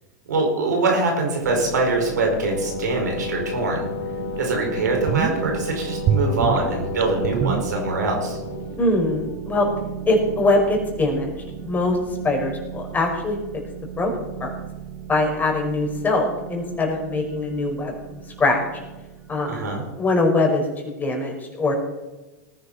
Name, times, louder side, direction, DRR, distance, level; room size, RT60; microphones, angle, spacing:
voice 1, 0.3-3.8 4.4-8.4 19.5-19.8, right 3 dB, 85° right, 1 dB, 5.1 m, -23 dB
sound 1, 1.4-20.3, right 8 dB, 55° right, 3.5 m, -37 dB
Wind instrument woodwind instrument, 2.3-8.8, left 5 dB, 85° left, 3.1 m, -32 dB
sound 2, 3.8-3.9 4.3-4.4 4.8-5.6 6.0-8.3 8.5-8.6, right 7 dB, 40° right, 1.1 m, -25 dB
voice 2, 8.8-9.7 10.1-11.3 11.6-12.0 12.2-13.4 14.0-14.1 14.4-14.5 15.1-18.6 19.3-19.7 20.0-21.7, left 2 dB, 20° left, 1 dB, 4.9 m, -22 dB
19.0 x 10.5 x 4.2 m, 1.1 s
hypercardioid pair, 105°, 9 cm